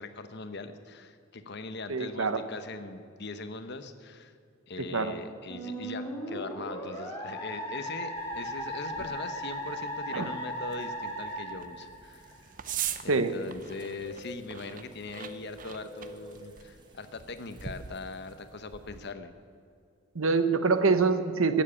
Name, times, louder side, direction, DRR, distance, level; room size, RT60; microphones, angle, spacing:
voice 1, 0.0-4.3 4.7-12.5 13.0-19.3, left 3 dB, 50° left, 10 dB, 0.9 m, -41 dB
voice 2, 1.9-2.4 4.9-5.1 10.1-10.3 13.1-13.3 20.1-21.6, right 4 dB, 70° right, 9 dB, 1.0 m, -25 dB
Musical instrument, 5.5-12.4, equal, 10° left, 3.5 m, -37 dB
sound 1, 8.2-19.1, right 9 dB, 40° right, 0.6 m, -43 dB
sound 2, 11.8-18.4, left 1 dB, 20° right, 1.5 m, -51 dB
16.5 x 7.4 x 8.7 m, 2.3 s
head